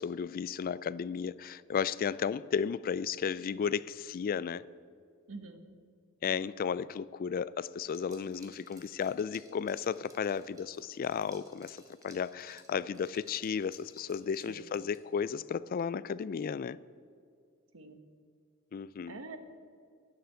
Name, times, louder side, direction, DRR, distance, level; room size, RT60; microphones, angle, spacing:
voice 1, 0.0-4.6 6.2-16.8 18.7-19.2, left 6 dB, 45° left, 0.3 m, -34 dB
voice 2, 5.3-5.6 14.5-14.7 17.7-18.0 19.1-19.4, right 3 dB, 75° right, 1.2 m, -45 dB
Liquid, 7.9-15.3, right 2 dB, 15° right, 1.7 m, -59 dB
11.0 x 9.3 x 7.7 m
head